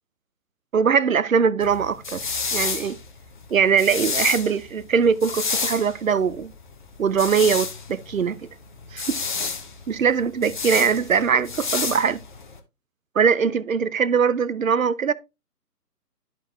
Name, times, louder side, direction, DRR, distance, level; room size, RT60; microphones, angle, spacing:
voice 1, 0.7-2.3 2.5-3.0 3.5-6.5 7.0-8.4 8.9-9.2 9.9-12.2 13.2-15.1, right 6 dB, 55° right, 0.6 m, -21 dB
sound 1, 1.6-12.6, left 5 dB, 30° left, 0.9 m, -30 dB
13.0 x 4.4 x 2.4 m
figure-of-eight pair, 140°, 48 cm